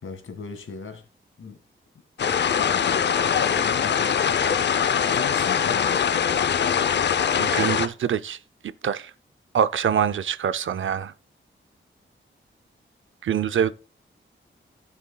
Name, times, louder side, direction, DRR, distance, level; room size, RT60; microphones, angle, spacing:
voice 1, 0.0-1.1 1.4-1.6 2.2-3.2 3.4-4.2 5.0-6.7, left 4 dB, 85° left, 2.0 m, -38 dB
sound 1, 2.2-7.9, left 7 dB, 60° left, 0.6 m, -22 dB
voice 2, 7.4-8.4 8.6-9.1 9.5-11.1 13.2-13.7, right 8 dB, 75° right, 0.5 m, -24 dB
16.0 x 7.1 x 2.3 m
wide cardioid pair, 175°, 20 cm